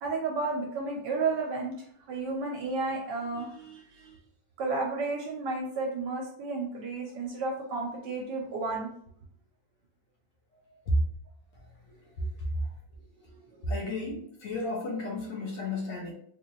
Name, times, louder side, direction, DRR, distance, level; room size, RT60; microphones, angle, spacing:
voice 1, 0.0-1.7 2.1-4.2 4.6-8.9 13.5-13.7, right 3 dB, 70° right, 0 dB, 1.2 m, -32 dB
voice 2, 13.6-16.1, left 2 dB, 75° left, -2 dB, 1.4 m, -33 dB
4.1 x 2.5 x 3.0 m, 0.65 s
omnidirectional pair, 2.0 m